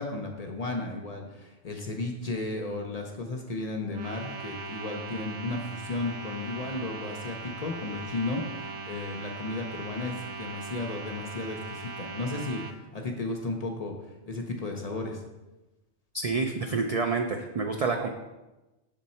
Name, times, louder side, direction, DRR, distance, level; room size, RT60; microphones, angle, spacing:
voice 1, 0.0-13.9 14.3-15.2, left 2 dB, 45° left, 2 dB, 0.5 m, -34 dB
sound 1, 3.9-12.7, right 4 dB, 90° right, 0.9 m, -39 dB
voice 2, 16.1-18.1, right 4 dB, 70° right, 3 dB, 0.3 m, -28 dB
6.4 x 3.7 x 4.2 m, 1.1 s
omnidirectional pair, 1.2 m